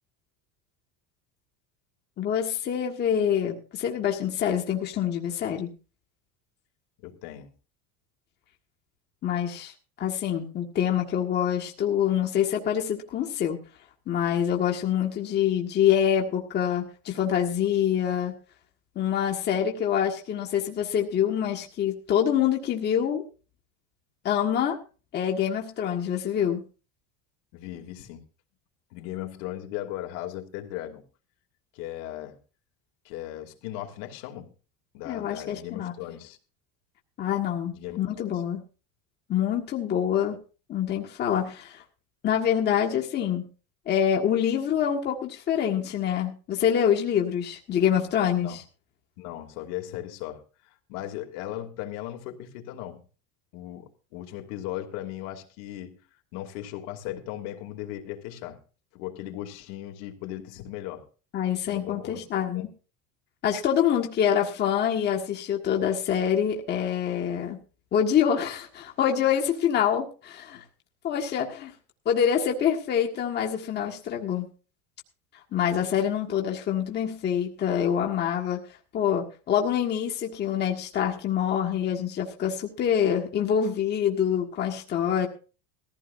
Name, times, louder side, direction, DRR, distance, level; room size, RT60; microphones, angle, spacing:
voice 1, 2.2-5.7 9.2-9.7 10.0-13.6 14.1-18.4 18.9-23.2 24.2-24.8 25.1-26.6 35.0-35.9 37.2-38.6 39.3-40.4 40.7-41.8 42.2-43.4 43.9-48.6 61.3-62.7 63.4-67.6 67.9-70.6 71.0-71.7 72.0-74.5 75.5-78.6 78.9-85.3, left 9 dB, 30° left, 1.7 m, -26 dB
voice 2, 7.0-7.5 27.5-28.2 28.9-31.0 31.7-32.4 33.0-34.5 34.9-36.4 37.3-37.4 37.7-38.4 48.4-48.6 49.2-53.0 53.5-53.8 54.1-56.0 56.3-58.6 58.9-61.1 61.7-62.6, left 13 dB, 65° left, 2.8 m, -37 dB
20.0 x 15.0 x 2.6 m
cardioid pair, 175°, 36 cm